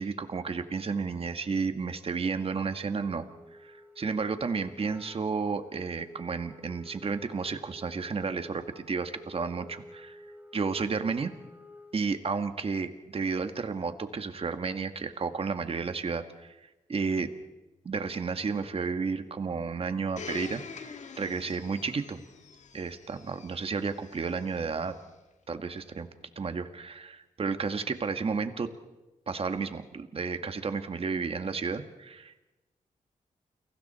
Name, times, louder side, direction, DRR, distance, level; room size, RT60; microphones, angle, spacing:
voice 1, 0.0-3.3 3.6-10.2 10.5-11.3 11.9-16.6 16.9-17.3 17.8-22.2 22.7-24.9 25.5-26.1 26.4-28.7 29.3-32.4, right 5 dB, 45° right, 8 dB, 1.9 m, -32 dB
Wind instrument woodwind instrument, 2.4-12.1, left 1 dB, 10° right, 3.0 m, -52 dB
Domestic sounds home sounds, 20.2-25.0 25.8-25.9, left 5 dB, 55° left, 1.9 m, -46 dB
30.0 x 23.0 x 4.5 m, 1.1 s
cardioid pair, 95°, 14 cm